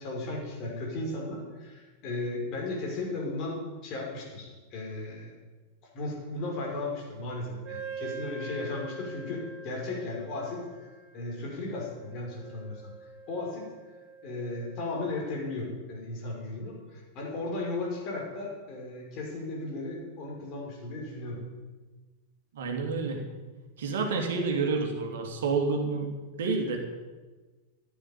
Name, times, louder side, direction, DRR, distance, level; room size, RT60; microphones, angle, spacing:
voice 1, 0.0-5.3 5.9-10.6 11.1-12.9 13.3-13.7 14.2-21.4, left 2 dB, 40° left, -1 dB, 5.7 m, -35 dB
Wind instrument woodwind instrument, 7.6-15.0, right 4 dB, 40° right, 2.7 m, -44 dB
voice 2, 22.5-23.2 23.8-26.1 26.4-26.8, right 4 dB, 60° right, 3 dB, 2.9 m, -29 dB
15.0 x 9.8 x 8.6 m, 1.3 s
figure-of-eight pair, 90°, 0 cm